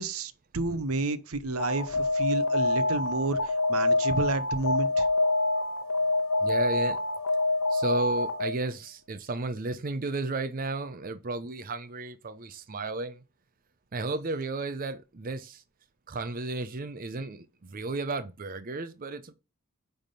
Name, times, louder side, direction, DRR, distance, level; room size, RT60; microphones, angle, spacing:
voice 1, 0.0-5.0, right 3 dB, 85° right, 0.8 m, -31 dB
Alarm, 1.6-8.7, left 2 dB, 80° left, 1.0 m, -26 dB
voice 2, 6.4-7.0 7.7-13.2 13.9-15.6 16.1-19.3, right 3 dB, 40° right, 0.6 m, -33 dB
9.1 x 3.6 x 5.5 m
head